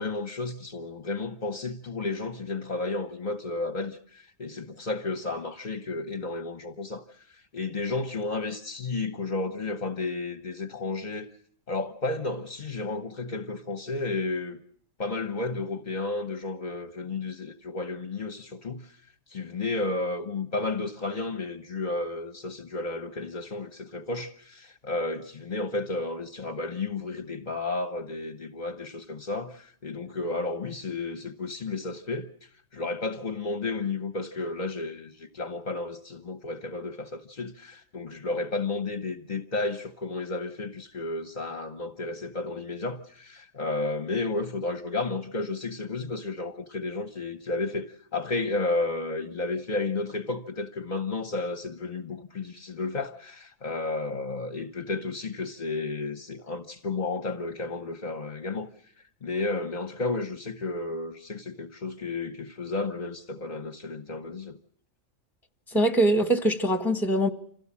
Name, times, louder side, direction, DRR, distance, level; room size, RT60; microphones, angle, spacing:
voice 1, 0.0-7.0 7.3-11.3 11.7-14.6 15.0-18.9 19.3-58.7 59.2-64.6, left 3 dB, 35° left, 1.1 m, -32 dB
voice 2, 65.7-67.3, right 1 dB, ahead, 1.5 m, -23 dB
27.5 x 17.0 x 7.4 m
omnidirectional pair, 1.4 m